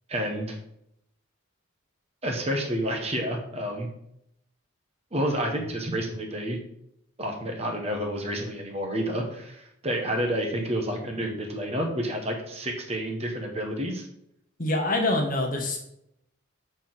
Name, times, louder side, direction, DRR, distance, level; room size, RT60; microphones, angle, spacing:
voice 1, 0.1-0.6 2.2-3.9 5.1-6.6 7.2-14.1, equal, 30° right, 2 dB, 1.2 m, -29 dB
voice 2, 14.6-15.8, left 2 dB, 40° left, 2 dB, 1.2 m, -25 dB
5.8 x 4.4 x 6.0 m, 0.76 s
head